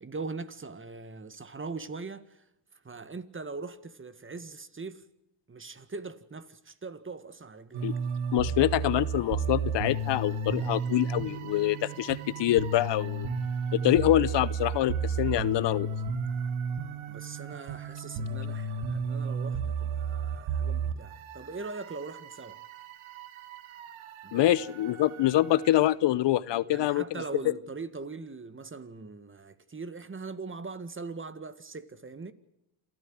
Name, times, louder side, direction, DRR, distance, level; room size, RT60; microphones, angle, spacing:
voice 1, 0.0-2.3 2.8-5.0 5.5-7.9 17.1-22.6 24.2-24.5 26.6-32.3, right 4 dB, 25° right, 1.9 m, -41 dB
sound 1, 7.7-25.9, right 4 dB, 90° right, 2.2 m, -33 dB
voice 2, 8.3-13.3 13.7-15.9 24.3-27.5, left 14 dB, 65° left, 0.8 m, -25 dB
27.5 x 13.5 x 7.8 m
supercardioid pair, 75°, 46 cm